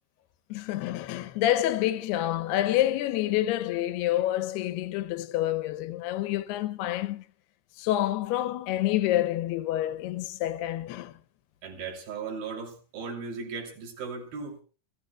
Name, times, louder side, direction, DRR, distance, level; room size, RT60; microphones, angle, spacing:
voice 1, 0.5-7.2 7.8-11.1, left 14 dB, 75° left, 2.7 m, -28 dB
voice 2, 11.6-14.6, right 5 dB, 60° right, 4.7 m, -37 dB
29.0 x 15.0 x 2.3 m
omnidirectional pair, 4.9 m